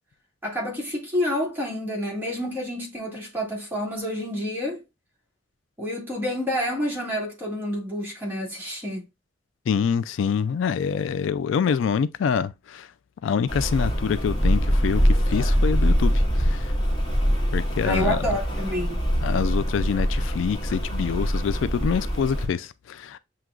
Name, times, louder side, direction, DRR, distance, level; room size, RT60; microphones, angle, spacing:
voice 1, 0.4-4.8 5.8-9.0 17.8-19.0, left 1 dB, 10° right, 2.2 m, -28 dB
voice 2, 9.7-12.9 13.2-16.8 17.5-18.3 19.2-23.2, left 6 dB, 80° left, 0.3 m, -26 dB
Rain, 13.5-22.5, equal, 25° left, 1.7 m, -23 dB
7.5 x 2.9 x 2.3 m
head